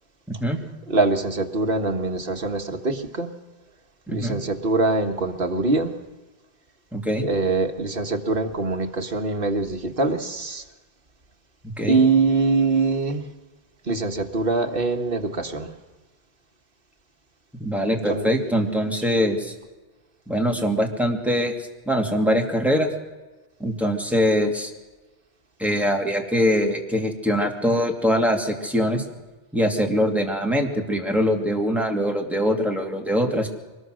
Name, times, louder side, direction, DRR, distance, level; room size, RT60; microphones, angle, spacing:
voice 1, 0.3-0.6 4.1-4.4 6.9-7.3 11.8-12.0 17.6-19.5 20.3-22.9 23.6-24.7 25.6-29.0 29.5-33.5, equal, ahead, 1 dB, 2.6 m, -23 dB
voice 2, 0.9-3.3 4.1-5.9 7.2-10.6 11.9-13.2 13.9-15.7 18.1-18.3, right 3 dB, 60° right, 4 dB, 1.8 m, -23 dB
24.0 x 20.0 x 6.4 m, 1.2 s
omnidirectional pair, 1.0 m